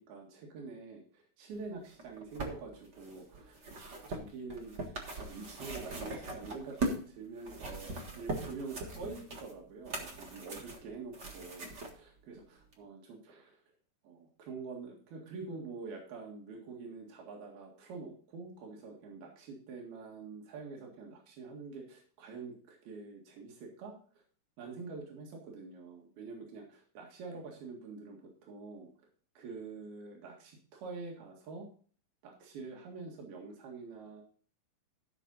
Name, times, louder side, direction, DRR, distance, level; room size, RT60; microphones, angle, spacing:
voice 1, 0.0-13.6 14.0-23.9 24.6-28.9 29.4-31.7 32.2-34.2, right 4 dB, 85° right, 0 dB, 3.9 m, -46 dB
sound 1, 1.9-7.1 7.4-11.9 12.7-12.8, right 2 dB, 40° right, 1.6 m, -40 dB
14.5 x 5.9 x 4.1 m, 0.43 s
omnidirectional pair, 4.2 m